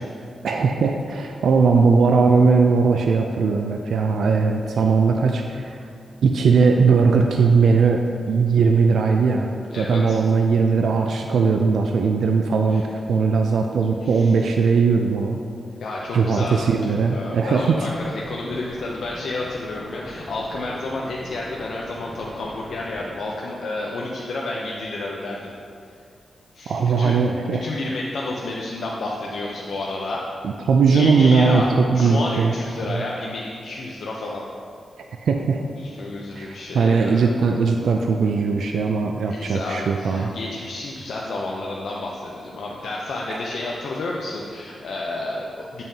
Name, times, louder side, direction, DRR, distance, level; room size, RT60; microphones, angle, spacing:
voice 1, 0.4-5.8 6.2-8.0 8.3-15.4 16.1-17.9 26.7-27.7 30.4-32.5 32.9-33.0 35.2-35.6 36.4-36.5 36.7-40.3, right 5 dB, 90° right, 3 dB, 0.3 m, -19 dB
voice 2, 9.7-10.2 12.7-12.8 14.0-14.3 15.8-25.5 26.5-27.2 27.5-30.2 30.9-34.4 35.8-37.2 39.3-45.8, left 2 dB, 75° left, -3 dB, 0.6 m, -30 dB
sound 1, 17.8-23.1, left 1 dB, 20° left, 1.0 m, -41 dB
8.8 x 5.4 x 2.7 m, 2.3 s
wide cardioid pair, 135°, 0 cm